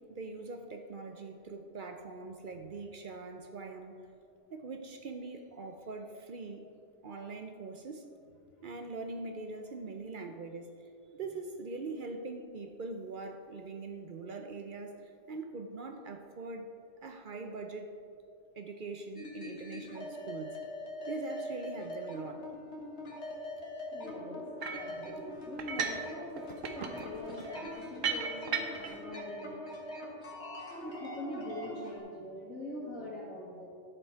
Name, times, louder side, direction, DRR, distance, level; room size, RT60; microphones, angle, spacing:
voice 1, 0.0-4.0 4.5-6.7 7.0-8.1 8.6-10.7 11.1-16.7 17.0-18.0 18.6-20.6 21.1-22.5, right 3 dB, 50° right, 5 dB, 0.6 m, -42 dB
sound 1, 19.2-32.0, left 1 dB, 55° left, 1.9 m, -43 dB
voice 2, 23.9-26.5 26.7-29.7 30.8-33.7, left 2 dB, 75° left, -8 dB, 2.1 m, -43 dB
sound 2, 24.6-24.9 25.6-26.1 26.4-29.0, right 6 dB, 70° right, 1.1 m, -36 dB
11.0 x 6.9 x 4.5 m, 2.5 s
omnidirectional pair, 1.4 m